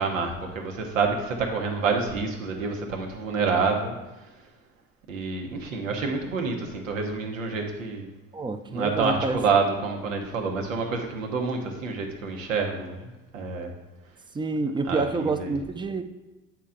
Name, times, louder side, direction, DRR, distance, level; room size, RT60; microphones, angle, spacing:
voice 1, 0.0-3.9 5.1-8.1 8.7-13.7 14.9-15.5, right 4 dB, 85° right, 2 dB, 1.0 m, -28 dB
voice 2, 8.3-9.4 14.3-16.0, right 3 dB, 10° right, 9 dB, 0.5 m, -28 dB
8.2 x 4.5 x 3.7 m, 1.1 s
hypercardioid pair, 65°, 38 cm